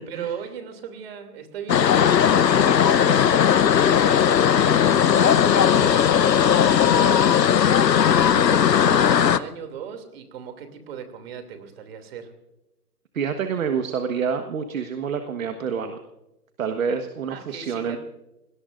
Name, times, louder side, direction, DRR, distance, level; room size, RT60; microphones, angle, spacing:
voice 1, 0.1-3.6 3.8-7.4 8.3-12.3 17.3-18.0, right 7 dB, 35° right, 7 dB, 2.9 m, -37 dB
sound 1, 1.7-9.4, left 8 dB, 80° left, 1.0 m, -17 dB
voice 2, 13.1-16.0 16.6-18.0, right 6 dB, 55° right, 6 dB, 1.5 m, -27 dB
30.0 x 18.5 x 2.6 m, 0.93 s
hypercardioid pair, 155°, 49 cm